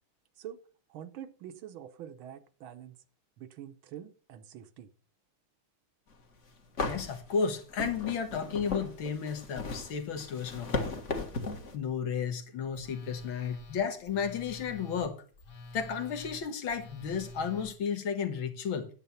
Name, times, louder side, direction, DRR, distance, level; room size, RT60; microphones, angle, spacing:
voice 1, 0.9-2.9 3.4-4.9, right 10 dB, 75° right, 1.7 m, -45 dB
sound 1, 6.2-6.3 6.8-11.7, left 3 dB, 40° left, 1.6 m, -36 dB
voice 2, 6.9-11.0 11.7-15.2 15.7-18.9, left 6 dB, 70° left, 2.1 m, -33 dB
Telephone, 12.7-17.7, left 2 dB, 55° left, 2.3 m, -47 dB
9.9 x 7.9 x 5.6 m
omnidirectional pair, 2.3 m